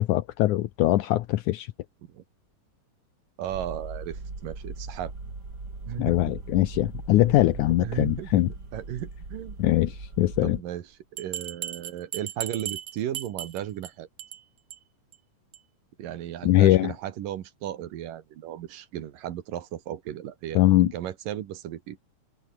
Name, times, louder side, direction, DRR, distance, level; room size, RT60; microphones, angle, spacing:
voice 1, 0.0-1.7 6.0-8.5 9.6-10.6 16.4-16.9 20.6-20.9, left 15 dB, 75° left, 2.2 m, -22 dB
voice 2, 3.4-5.1 5.9-6.2 7.8-8.5 8.7-9.6 10.4-14.1 16.0-22.0, right 11 dB, 85° right, 3.3 m, -35 dB
sound 1, 3.5-10.6, right 3 dB, 30° right, 5.3 m, -39 dB
Bell, 11.2-13.9 14.2-14.4 14.7-14.8 15.1-15.2 15.5-15.6, right 11 dB, 60° right, 2.4 m, -36 dB
omnidirectional pair, 3.8 m